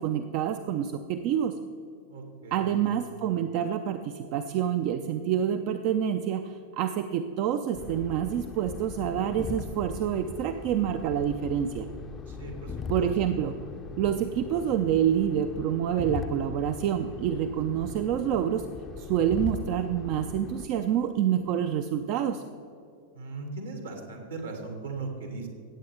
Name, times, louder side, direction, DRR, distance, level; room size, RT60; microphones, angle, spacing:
voice 1, 0.0-1.6 2.5-11.9 12.9-13.6 14.0-18.7 19.0-22.4, right 9 dB, 45° right, 9 dB, 0.4 m, -27 dB
voice 2, 2.1-2.9 12.3-13.2 23.1-25.5, right 3 dB, 70° right, 3 dB, 2.0 m, -38 dB
sound 1, 7.7-20.7, left 5 dB, 25° left, 0.5 m, -40 dB
16.5 x 8.4 x 3.3 m, 2.4 s
figure-of-eight pair, 90°, 0 cm